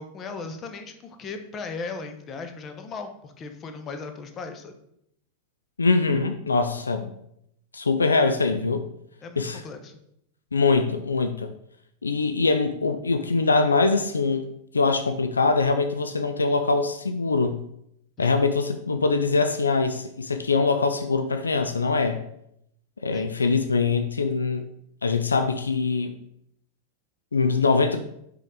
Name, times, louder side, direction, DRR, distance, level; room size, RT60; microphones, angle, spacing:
voice 1, 0.0-4.7 9.2-10.0 18.2-18.3 23.1-23.3, left 4 dB, 25° left, 6 dB, 0.8 m, -37 dB
voice 2, 5.8-7.1 7.7-8.8 9.4-9.6 10.5-11.5 12.0-14.5 14.7-17.6 18.2-22.2 23.0-24.7 25.0-26.1 27.3-28.0, left 4 dB, 75° left, 7 dB, 0.4 m, -23 dB
5.6 x 3.9 x 4.8 m, 0.75 s
figure-of-eight pair, 90°, 0 cm